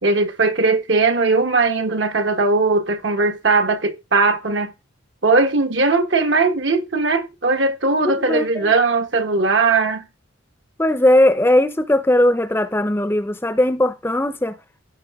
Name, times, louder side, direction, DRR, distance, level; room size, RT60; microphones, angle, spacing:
voice 1, 0.0-4.7 5.2-10.1, right 3 dB, 60° right, 1.2 m, -19 dB
voice 2, 8.0-8.7 10.8-14.6, left 1 dB, 10° left, 0.6 m, -18 dB
15.5 x 5.4 x 3.5 m
head